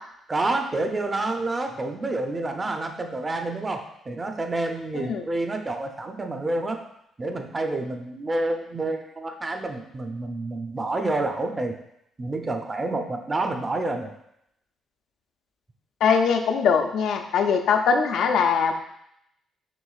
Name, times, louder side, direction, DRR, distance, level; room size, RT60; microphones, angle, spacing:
voice 1, 0.3-6.8 7.2-11.7 12.2-14.1, right 2 dB, 25° right, 4 dB, 0.6 m, -28 dB
voice 2, 4.9-5.3 16.0-18.7, left 6 dB, 75° left, 5 dB, 0.4 m, -21 dB
6.1 x 3.0 x 2.4 m, 0.77 s
cardioid pair, 90°, 0 cm